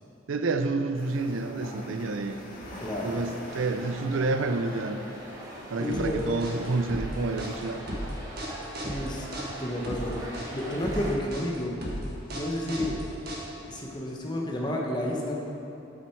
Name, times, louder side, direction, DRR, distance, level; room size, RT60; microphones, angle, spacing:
voice 1, 0.3-2.4 3.0-5.0 5.7-7.8, right 3 dB, 80° right, 8 dB, 0.5 m, -29 dB
sound 1, 0.9-7.6, left 1 dB, 45° left, 1.7 m, -46 dB
voice 2, 2.8-3.2 5.8-6.4 8.8-9.3 9.6-10.2 10.5-11.8 12.3-13.0 13.7-15.3, left 1 dB, 20° left, -1 dB, 1.0 m, -31 dB
sound 2, 3.5-11.1, right 1 dB, 20° right, 1.6 m, -42 dB
sound 3, 5.9-13.8, equal, 50° right, 1.4 m, -35 dB
8.6 x 8.1 x 4.6 m, 2.8 s
head